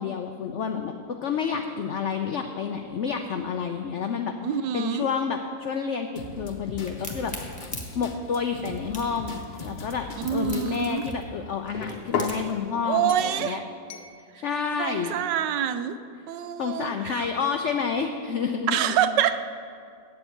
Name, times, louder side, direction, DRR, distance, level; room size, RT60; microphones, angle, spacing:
voice 1, 0.0-4.3 4.7-6.1 6.4-7.3 7.9-13.6 14.3-15.2 16.6-19.0, left 6 dB, 85° left, 6 dB, 0.6 m, -29 dB
voice 2, 4.4-5.1 10.2-11.0 12.9-13.6 14.3-14.4 14.8-16.0 16.3-17.3 18.7-19.3, right 10 dB, 80° right, 10 dB, 1.2 m, -26 dB
sound 1, 6.2-11.2, left 2 dB, 45° left, 0.6 m, -39 dB
Crack, 6.9-12.6, left 1 dB, 5° left, 1.2 m, -41 dB
sound 2, 8.9-11.1 11.7-12.4 13.1-13.4 13.9-14.1, left 6 dB, 65° left, 1.3 m, -35 dB
8.1 x 8.0 x 8.5 m, 2.3 s
omnidirectional pair, 1.9 m